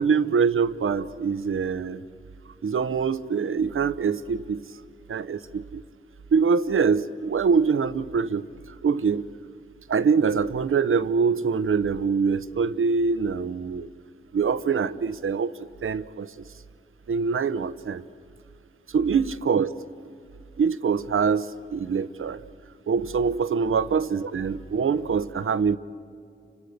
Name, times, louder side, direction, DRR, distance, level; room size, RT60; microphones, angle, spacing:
voice 1, 0.0-2.0 2.6-4.6 5.1-5.8 6.3-8.5 8.8-9.2 9.9-13.9 14.3-16.3 17.1-18.0 18.9-19.7 20.6-22.4 22.9-25.8, right 5 dB, 80° right, 14 dB, 0.9 m, -24 dB
30.0 x 25.5 x 6.8 m, 2.4 s
cardioid pair, 50°, 21 cm